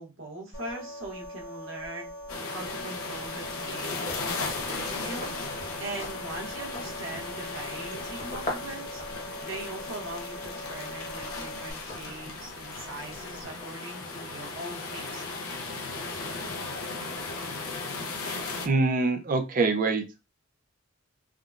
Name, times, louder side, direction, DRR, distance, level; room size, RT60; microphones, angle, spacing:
voice 1, 0.0-2.1 2.5-9.0 9.4-15.2, right 2 dB, 65° right, -1 dB, 1.0 m, -41 dB
sound 1, 0.5-11.7, left 1 dB, 55° left, 1.4 m, -42 dB
sound 2, 2.3-18.7, left 3 dB, 80° left, 0.6 m, -36 dB
sound 3, 3.1-13.4, left 1 dB, 35° left, 1.0 m, -44 dB
voice 2, 18.2-20.0, right 3 dB, 40° right, 6 dB, 0.4 m, -25 dB
3.6 x 2.2 x 2.4 m, 0.27 s
head